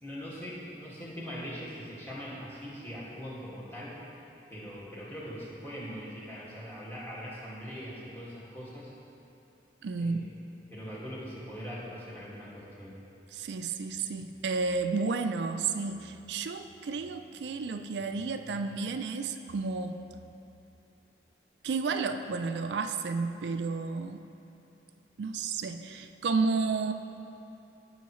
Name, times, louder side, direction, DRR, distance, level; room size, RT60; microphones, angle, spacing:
voice 1, 0.0-4.0 4.5-8.9 10.0-10.2 10.7-12.9, equal, 10° left, -8 dB, 1.9 m, -41 dB
voice 2, 9.8-10.3 13.3-20.0 21.6-24.3 25.2-26.9, right 4 dB, 80° right, 7 dB, 0.4 m, -32 dB
16.5 x 5.6 x 3.1 m, 2.7 s
head